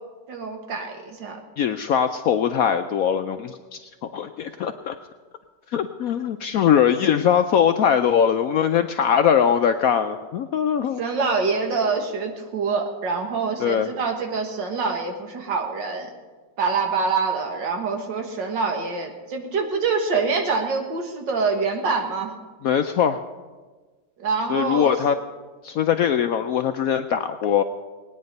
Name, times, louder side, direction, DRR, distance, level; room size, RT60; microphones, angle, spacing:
voice 1, 0.3-1.4 11.0-16.1 16.6-22.3 24.2-24.9, right 4 dB, 75° right, 3 dB, 2.2 m, -25 dB
voice 2, 1.6-5.0 5.7-11.0 13.6-13.9 22.6-23.2 24.5-25.1 25.6-27.6, left 8 dB, 70° left, 8 dB, 0.8 m, -21 dB
19.5 x 9.5 x 5.3 m, 1.3 s
omnidirectional pair, 2.0 m